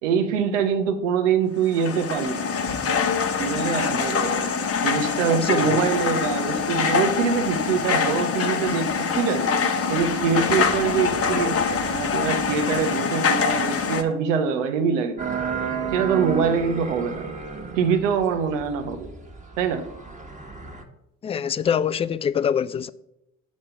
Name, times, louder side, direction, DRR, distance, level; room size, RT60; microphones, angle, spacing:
voice 1, 0.0-2.5 3.4-9.5 9.9-15.4 15.9-17.2 17.8-19.1 19.6-19.9, right 6 dB, 80° right, 0.9 m, -24 dB
sound 1, 1.6-14.0, left 5 dB, 40° left, 1.0 m, -24 dB
voice 2, 5.3-5.8 21.2-22.9, left 8 dB, 15° left, 0.3 m, -25 dB
sound 2, 15.2-20.8, right 6 dB, 20° right, 1.4 m, -32 dB
7.1 x 4.2 x 6.6 m
hypercardioid pair, 55°, 37 cm